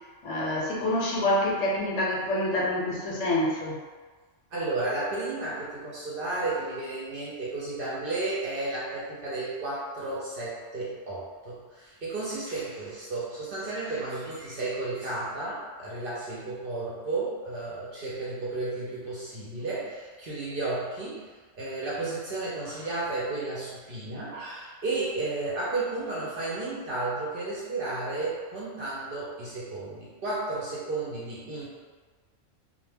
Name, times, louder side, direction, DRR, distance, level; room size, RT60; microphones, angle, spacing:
voice 1, 0.2-3.8, left 1 dB, 70° left, -3 dB, 0.8 m, -27 dB
voice 2, 4.5-21.3 21.5-31.7, right 2 dB, 60° right, -7 dB, 0.7 m, -33 dB
2.1 x 2.1 x 3.2 m, 1.4 s
omnidirectional pair, 1.3 m